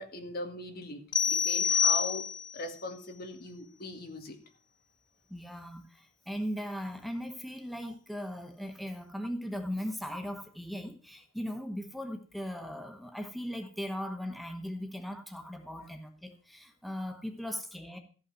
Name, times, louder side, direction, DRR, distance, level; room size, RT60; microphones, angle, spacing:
voice 1, 0.0-2.3 2.5-4.4, left 2 dB, 55° left, 5 dB, 2.0 m, -40 dB
sound 1, 1.1-2.6, left 7 dB, 25° left, 0.5 m, -27 dB
voice 2, 5.3-18.0, equal, ahead, 4 dB, 1.1 m, -38 dB
14.5 x 5.5 x 7.7 m, 0.41 s
head